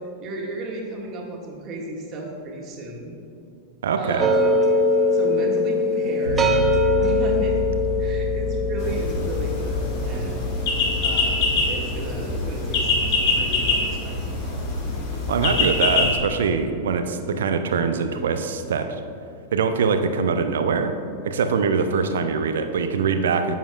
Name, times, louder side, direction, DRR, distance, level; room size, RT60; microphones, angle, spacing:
voice 1, 0.2-3.1 4.0-4.6 5.1-6.5 7.0-7.6 8.0-10.5 11.0-14.6, right 2 dB, 35° right, -2 dB, 1.9 m, -34 dB
voice 2, 3.8-4.3 15.3-18.9 19.5-20.9 21.2-23.6, right 5 dB, 65° right, 7 dB, 0.7 m, -23 dB
sound 1, 4.2-13.4, left 2 dB, 20° right, 0.7 m, -23 dB
Bass guitar, 6.2-16.1, left 2 dB, 85° left, 1.5 m, -31 dB
sound 2, 8.8-16.2, left 3 dB, 45° left, 1.8 m, -24 dB
14.5 x 7.3 x 2.4 m, 2.5 s
figure-of-eight pair, 90°, 0 cm